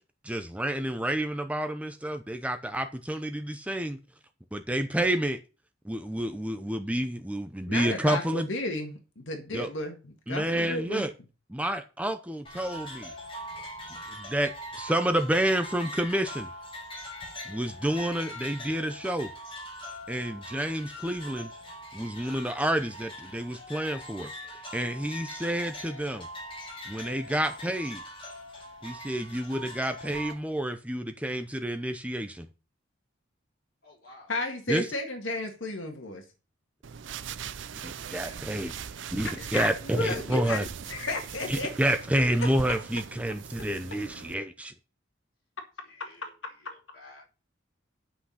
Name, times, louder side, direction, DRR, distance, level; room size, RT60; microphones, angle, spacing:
voice 1, 0.2-4.0 4.5-5.4 5.8-8.5 9.5-9.7 10.3-11.1 11.5-13.1 14.2-16.5 17.5-19.3 20.1-21.5 21.9-24.3 24.7-26.3 26.9-28.0 28.8-32.5 34.7-34.9 37.8-38.7 39.1-40.6 41.5-44.7, right 1 dB, 5° right, 0.6 m, -29 dB
voice 2, 7.7-10.0 10.3-11.0 34.3-36.2 39.4-41.9, left 2 dB, 75° left, 1.8 m, -33 dB
Music box horizontal, 12.4-30.3, left 1 dB, 30° left, 4.2 m, -42 dB
voice 3, 33.8-34.3 37.7-39.0 39.3-40.0 45.8-47.2, left 2 dB, 50° left, 4.5 m, -55 dB
sound 1, 36.8-44.3, right 7 dB, 70° right, 0.5 m, -41 dB
10.0 x 6.0 x 5.7 m
head